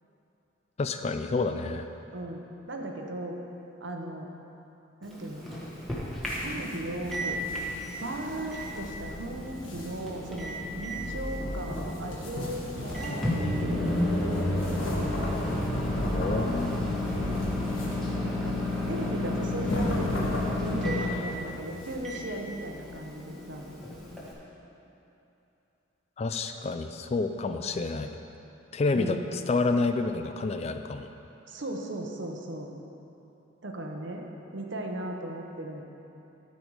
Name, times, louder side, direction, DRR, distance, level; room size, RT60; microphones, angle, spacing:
voice 1, 0.8-1.9 16.1-17.0 26.2-28.1 28.7-31.1, left 3 dB, 35° left, 8 dB, 0.3 m, -29 dB
voice 2, 2.1-3.4 3.8-4.3 5.0-5.4 6.4-7.4 8.0-14.0 18.2-18.6 18.8-20.1 20.6-23.7 28.9-29.3 31.5-32.7 33.6-35.8, right 1 dB, 65° right, 2 dB, 0.9 m, -37 dB
Microwave oven, 5.0-24.3, left 2 dB, ahead, 1.3 m, -34 dB
sound 1, 6.2-21.9, equal, 85° left, 1.4 m, -34 dB
12.5 x 5.2 x 4.7 m, 2.9 s
head